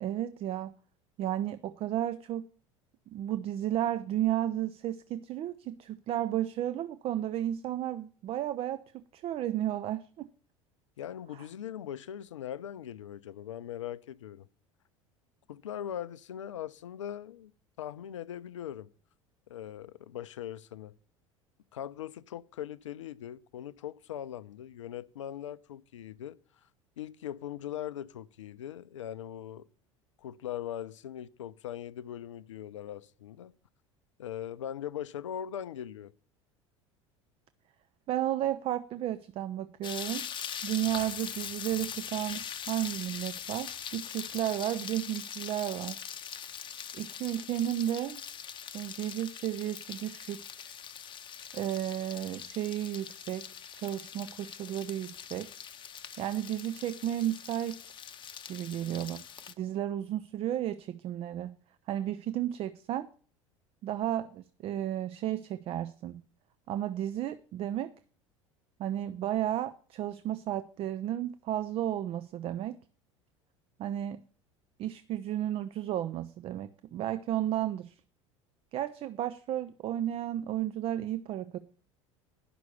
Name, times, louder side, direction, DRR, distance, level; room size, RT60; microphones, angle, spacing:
voice 1, 0.0-0.7 1.2-2.4 3.1-10.3 38.1-40.3 40.6-46.0 46.9-48.2 48.7-50.7 51.5-53.5 53.7-55.5 56.2-57.8 58.5-59.2 59.6-61.6 61.9-63.1 63.8-66.2 66.7-67.9 68.8-72.8 73.8-74.2 74.8-78.0 78.7-81.6, right 12 dB, 35° right, 0.5 m, -33 dB
voice 2, 11.0-14.5 15.5-17.5 17.8-18.9 19.5-20.9 21.7-26.4 27.0-29.7 30.2-33.5 34.2-36.1, left 10 dB, 70° left, 0.5 m, -40 dB
sound 1, 39.8-59.5, left 8 dB, 30° left, 0.8 m, -42 dB
11.0 x 6.1 x 6.8 m
figure-of-eight pair, 70°, 16 cm